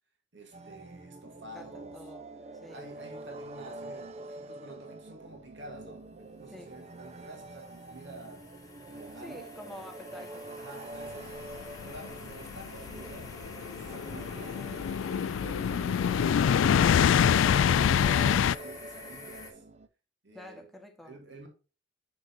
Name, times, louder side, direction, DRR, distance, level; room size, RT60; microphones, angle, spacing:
voice 1, 0.3-2.1 2.7-8.5 8.9-9.7 10.6-11.4 11.8-14.9 15.4-17.8 18.0-19.6 20.2-20.7 21.0-21.5, right 2 dB, 65° right, 2.1 m, -49 dB
sound 1, 0.5-19.9, right 2 dB, 35° right, 0.7 m, -46 dB
voice 2, 1.5-2.3 2.6-2.9 6.5-6.7 9.2-10.7 20.3-21.2, left 1 dB, ahead, 1.2 m, -47 dB
sound 2, 5.7-19.5, left 3 dB, 20° left, 1.2 m, -49 dB
sound 3, 11.5-18.6, left 8 dB, 75° left, 0.3 m, -25 dB
6.8 x 6.2 x 2.6 m
head